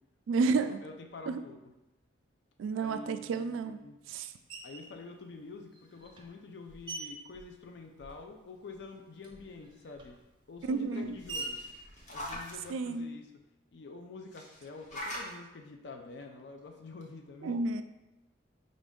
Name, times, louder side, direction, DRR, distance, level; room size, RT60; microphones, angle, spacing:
voice 1, 0.3-0.8 1.3-1.4 2.6-3.8 4.1-4.3 10.7-11.2 12.7-13.1 17.4-17.8, right 4 dB, 80° right, 11 dB, 0.3 m, -31 dB
voice 2, 0.8-1.6 2.7-4.0 4.6-10.2 10.5-11.6 12.1-13.3 13.7-17.6, left 3 dB, 60° left, 4 dB, 0.4 m, -47 dB
Screech, 4.5-5.0 5.7-8.4 8.7-13.0, right 2 dB, 25° right, 0.5 m, -46 dB
sound 1, 10.9-12.7 14.3-15.3 16.6-16.7 17.0-17.1, left 1 dB, 35° left, 0.8 m, -42 dB
5.2 x 2.5 x 3.5 m, 0.96 s
head